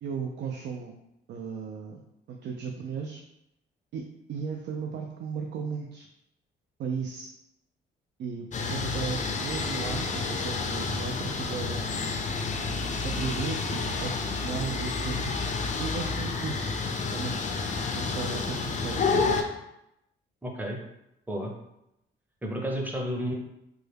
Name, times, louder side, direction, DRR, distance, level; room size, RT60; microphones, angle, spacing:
voice 1, 0.0-1.0 1.3-2.0 2.3-3.2 3.9-4.0 4.3-6.1 6.8-7.3 8.2-12.2 13.0-15.3 15.8-16.8 17.1-17.4 17.9-19.4, right 6 dB, 60° right, 2 dB, 0.4 m, -35 dB
sound 1, 8.5-19.4, left 4 dB, 40° left, 0.5 m, -30 dB
voice 2, 20.4-20.8 21.3-21.5 22.4-23.3, equal, 10° right, 0 dB, 0.7 m, -31 dB
3.3 x 2.1 x 3.4 m, 0.84 s
cardioid pair, 90°, 20 cm